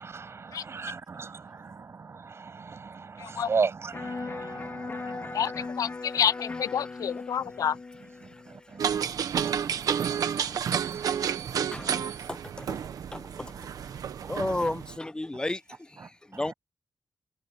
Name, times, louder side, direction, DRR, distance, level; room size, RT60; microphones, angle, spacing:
voice 1, 0.0-5.7 7.4-7.5 8.2-12.3 14.2-14.7 16.0-16.5, right 5 dB, 45° right, 8.0 m, -37 dB
voice 2, 3.2-3.5 5.3-5.5 5.8-7.8, left 8 dB, 75° left, 0.6 m, -28 dB
Electric guitar, 3.9-10.0, left 3 dB, 35° left, 4.0 m, -39 dB
sound 1, 8.8-15.0, right 8 dB, 85° right, 1.2 m, -30 dB
voice 3, 12.3-12.8 13.1-13.5 14.3-16.5, left 2 dB, 15° left, 1.0 m, -33 dB
wide cardioid pair, 110°, 6 cm